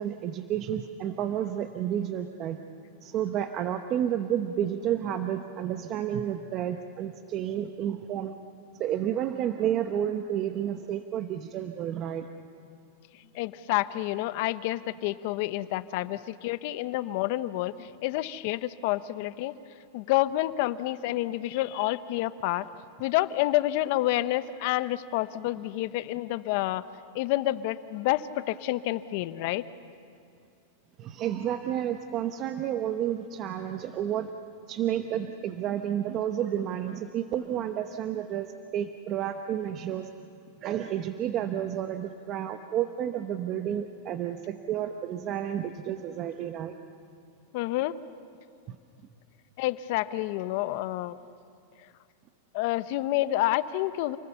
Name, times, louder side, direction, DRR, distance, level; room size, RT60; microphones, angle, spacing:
voice 1, 0.0-2.6 3.0-8.3 8.8-12.3 31.0-34.3 34.7-40.1 40.6-46.7 48.7-48.8, right 10 dB, 35° right, 7 dB, 0.9 m, -31 dB
voice 2, 13.3-19.6 19.9-22.7 23.0-26.8 27.1-29.6 47.5-48.0 49.6-51.2 52.5-54.2, left 16 dB, 55° left, 14 dB, 0.8 m, -28 dB
29.0 x 19.5 x 7.0 m, 2.6 s
supercardioid pair, 140°, 0 cm